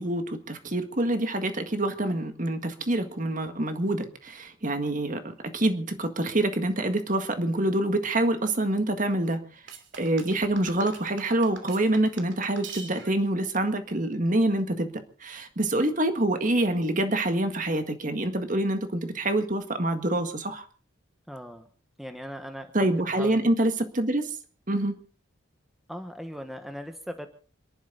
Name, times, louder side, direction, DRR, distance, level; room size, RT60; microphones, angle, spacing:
voice 1, 0.0-9.4 9.9-14.9 15.2-20.6 22.7-24.3 24.7-24.9, right 1 dB, 40° right, 7 dB, 1.8 m, -26 dB
sound 1, 9.7-13.3, right 5 dB, 60° right, 2.8 m, -43 dB
voice 2, 21.3-21.7 22.0-23.4 25.9-27.3, equal, ahead, 6 dB, 1.2 m, -39 dB
28.0 x 11.5 x 4.0 m, 0.40 s
head